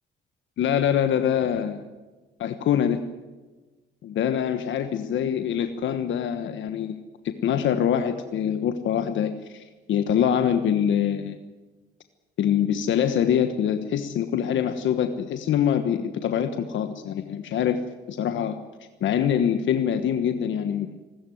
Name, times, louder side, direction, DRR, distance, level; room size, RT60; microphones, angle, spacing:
voice 1, 0.6-1.8 2.4-3.0 4.0-7.0 7.4-11.4 12.4-18.6 19.0-21.0, left 9 dB, 75° left, 9 dB, 1.3 m, -24 dB
27.0 x 13.5 x 9.3 m, 1.3 s
cardioid pair, 90°, 20 cm